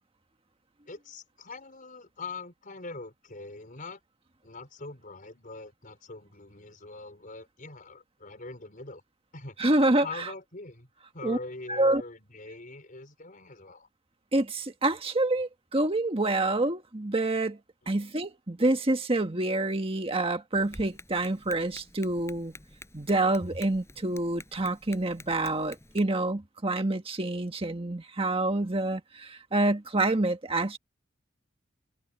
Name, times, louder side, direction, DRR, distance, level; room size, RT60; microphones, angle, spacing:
voice 1, 0.9-4.0 4.4-9.0 9.3-9.6 10.0-10.9 11.1-13.9 17.8-18.0, left 3 dB, 45° left, 4.9 m, -43 dB
voice 2, 9.6-10.3 11.2-11.4 11.7-12.0 14.3-17.6 17.9-22.5 22.9-30.8, right 2 dB, 30° right, 1.5 m, -27 dB
Tap, 20.5-26.0, left 2 dB, 15° left, 5.0 m, -51 dB
head